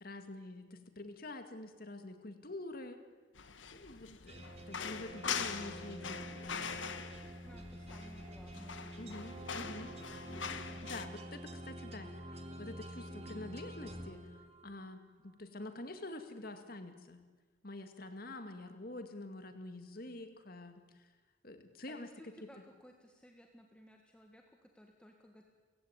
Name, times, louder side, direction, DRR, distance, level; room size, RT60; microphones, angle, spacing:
voice 1, 0.0-3.0 3.7-6.6 9.0-9.9 10.9-12.1 12.6-14.2 14.6-17.2 17.6-20.8 21.4-22.3, left 2 dB, 50° left, 7 dB, 2.1 m, -47 dB
sound 1, 3.3-11.1, left 6 dB, 80° left, 1.4 m, -43 dB
sound 2, 4.3-14.9, right 1 dB, 35° right, 2.2 m, -48 dB
voice 2, 7.4-11.0 21.9-25.5, equal, 5° left, 2 dB, 1.8 m, -59 dB
30.0 x 16.5 x 8.9 m, 1.3 s
head